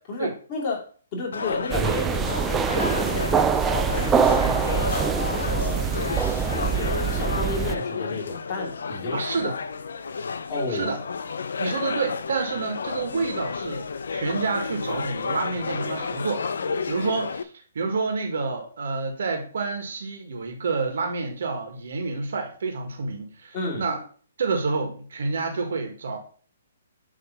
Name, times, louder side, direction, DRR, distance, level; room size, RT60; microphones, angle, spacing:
voice 1, 0.1-0.8 1.1-5.9 6.5-9.5 10.5-10.9 23.5-23.9, left 3 dB, 25° left, -4 dB, 2.8 m, -32 dB
sound 1, 1.3-17.4, left 5 dB, 80° left, 0.7 m, -31 dB
sound 2, 1.7-7.7, right 7 dB, 10° right, 0.3 m, -24 dB
voice 2, 9.1-9.6 10.7-11.0 11.6-16.5 16.9-24.0 24.4-26.2, right 4 dB, 65° right, 4 dB, 1.7 m, -28 dB
7.7 x 3.3 x 5.8 m, 0.43 s
hypercardioid pair, 165°, 0 cm